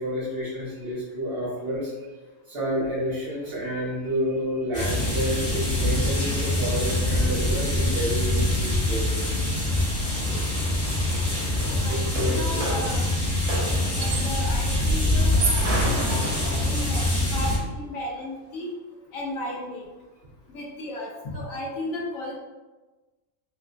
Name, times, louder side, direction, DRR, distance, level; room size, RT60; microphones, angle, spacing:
voice 1, 0.0-2.1 2.5-9.8 11.8-12.7 17.0-17.1, equal, 50° right, -6 dB, 1.1 m, -30 dB
sound 1, 4.7-17.6, left 1 dB, 35° left, 0.9 m, -24 dB
sound 2, 8.6-8.7 8.9-14.5 15.2-17.0, right 2 dB, 65° right, 0.9 m, -33 dB
voice 2, 11.6-13.1 14.0-18.7 19.1-19.8 20.5-22.3, left 1 dB, 75° left, -3 dB, 1.2 m, -34 dB
3.4 x 3.0 x 2.4 m, 1.2 s
omnidirectional pair, 1.4 m